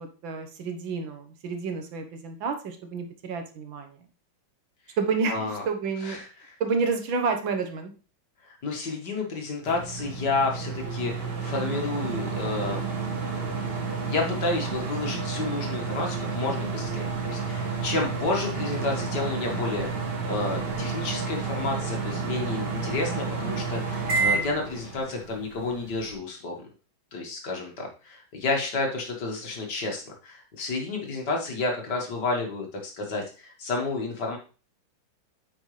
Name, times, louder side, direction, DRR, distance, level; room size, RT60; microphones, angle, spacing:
voice 1, 0.0-4.0 5.0-6.2 6.6-7.9, right 4 dB, 75° right, 6 dB, 1.8 m, -29 dB
voice 2, 5.3-5.7 6.0-6.5 8.5-12.9 13.5-26.6 27.1-34.4, left 3 dB, 55° left, 1 dB, 2.1 m, -31 dB
sound 1, 9.7-26.1, right 4 dB, 55° right, 2.2 m, -31 dB
8.8 x 5.4 x 3.3 m, 0.35 s
omnidirectional pair, 2.2 m